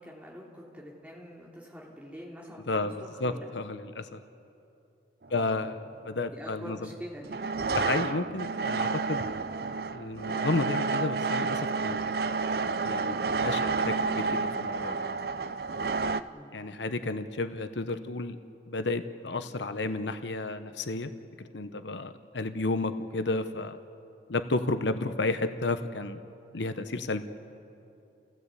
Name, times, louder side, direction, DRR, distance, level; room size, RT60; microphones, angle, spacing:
voice 1, 0.0-3.4 6.3-7.4 16.1-16.5, equal, 5° right, -4 dB, 3.5 m, -45 dB
voice 2, 2.7-4.2 5.3-6.9 7.7-9.4 9.9-12.0 12.8-15.0 16.5-18.4 18.7-21.1 21.4-23.8 24.3-26.2 26.5-27.2, left 2 dB, 80° left, 9 dB, 1.0 m, -32 dB
sound 1, 5.2-5.4 7.2-16.2, right 4 dB, 55° right, 0.6 m, -30 dB
29.5 x 16.0 x 8.3 m, 2.7 s
head